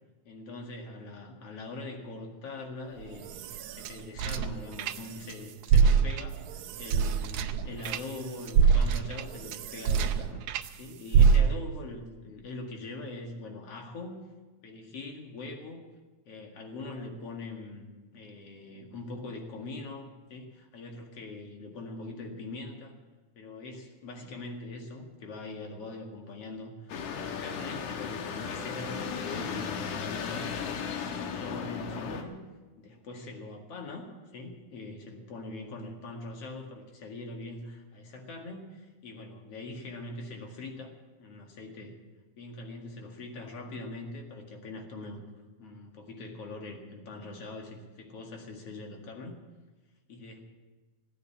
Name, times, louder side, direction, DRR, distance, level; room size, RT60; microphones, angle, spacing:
voice 1, 0.3-3.4 3.7-14.2 14.6-15.8 16.3-22.9 23.4-32.4 32.8-41.9 42.4-45.2 45.6-49.4 50.1-50.5, left 2 dB, 55° left, 2 dB, 2.9 m, -42 dB
sound 1, 3.0-5.3 5.6-10.7 11.1-11.8, right 6 dB, 80° right, 2.1 m, -25 dB
sound 2, 26.9-32.2, left 6 dB, 75° left, 2.5 m, -35 dB
17.0 x 9.4 x 8.6 m, 1.3 s
omnidirectional pair, 3.4 m